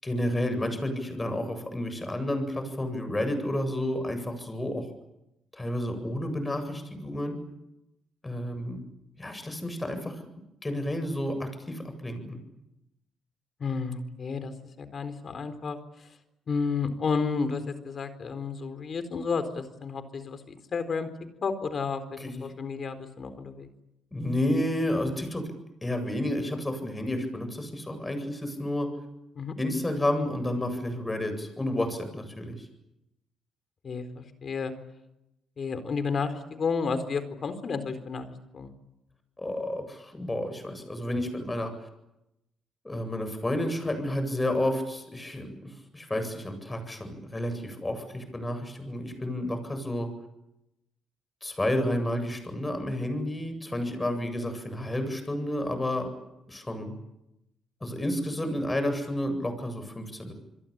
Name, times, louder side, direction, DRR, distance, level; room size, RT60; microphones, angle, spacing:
voice 1, 0.0-4.9 5.5-7.4 8.2-8.8 9.2-10.2 10.6-12.4 22.2-22.4 24.1-25.5 25.8-28.9 29.6-32.7 39.4-41.9 42.8-50.1 51.4-56.1 56.5-57.0 57.8-60.3, left 1 dB, 15° left, 8 dB, 8.0 m, -31 dB
voice 2, 13.6-15.8 16.5-21.1 21.4-23.7 29.4-29.6 33.8-34.7 35.6-38.3 38.5-38.7, left 5 dB, 45° left, 10 dB, 4.2 m, -31 dB
28.0 x 22.0 x 9.0 m, 0.89 s
cardioid pair, 90°, 0 cm